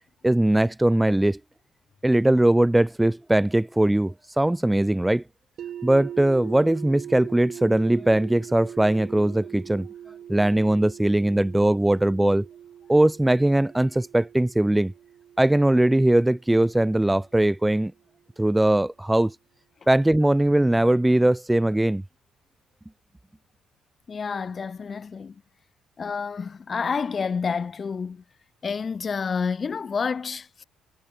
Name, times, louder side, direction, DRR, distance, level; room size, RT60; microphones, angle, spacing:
voice 1, 0.2-1.4 2.0-5.2 5.8-9.9 10.3-12.5 12.9-14.9 15.4-17.9 18.4-19.4 19.9-22.0, right 1 dB, 10° right, 0.7 m, -20 dB
sound 1, 5.6-17.5, right 10 dB, 65° right, 4.3 m, -42 dB
voice 2, 24.1-25.3 26.0-28.2 28.6-30.6, left 5 dB, 40° left, 2.0 m, -29 dB
supercardioid pair, 60°, 0 cm